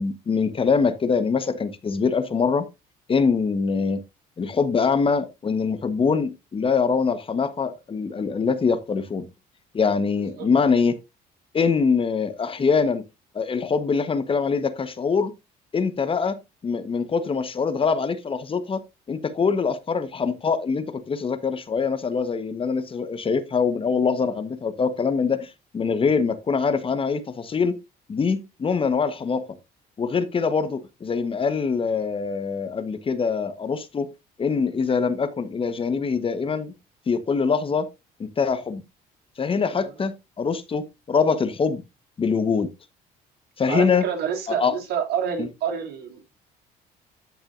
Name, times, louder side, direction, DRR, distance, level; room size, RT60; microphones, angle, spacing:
voice 1, 0.0-2.6 3.1-4.0 4.4-9.3 9.7-11.0 11.5-13.0 13.3-15.3 15.7-16.4 16.6-18.8 19.1-27.8 28.1-29.4 30.0-34.1 34.4-36.7 37.1-37.9 38.2-38.8 39.4-41.8 42.2-42.7 43.6-44.1 44.5-44.7 45.4-45.5, left 5 dB, 30° left, 1.2 m, -23 dB
voice 2, 43.7-46.2, right 8 dB, 70° right, 4.2 m, -28 dB
14.0 x 6.2 x 2.5 m
cardioid pair, 110°, 17 cm